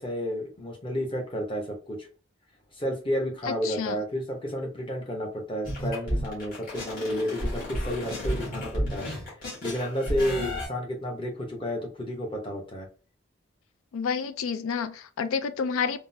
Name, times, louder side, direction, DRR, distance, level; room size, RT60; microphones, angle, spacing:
voice 1, 0.0-2.1 2.8-9.1 9.6-12.9, equal, 25° left, 0.7 m, -31 dB
voice 2, 3.5-4.0 10.4-10.5 13.9-16.0, left 6 dB, 90° left, 0.4 m, -29 dB
sound 1, 5.6-10.7, equal, 45° left, 1.6 m, -32 dB
3.6 x 2.0 x 2.6 m
head